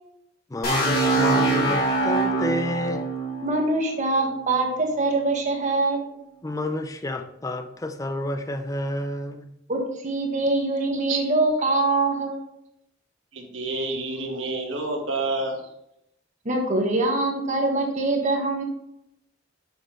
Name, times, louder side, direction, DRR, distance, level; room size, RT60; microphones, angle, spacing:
voice 1, 0.5-3.0 6.4-9.5, left 1 dB, 15° left, 8 dB, 0.5 m, -29 dB
sound 1, 0.6-4.5, right 2 dB, 50° left, 2.9 m, -24 dB
voice 2, 3.4-6.0 9.7-12.4 16.4-18.6, right 2 dB, 40° right, 1 dB, 1.4 m, -23 dB
voice 3, 13.3-15.6, right 3 dB, 75° right, 1 dB, 1.5 m, -28 dB
6.6 x 6.5 x 3.1 m, 0.78 s
head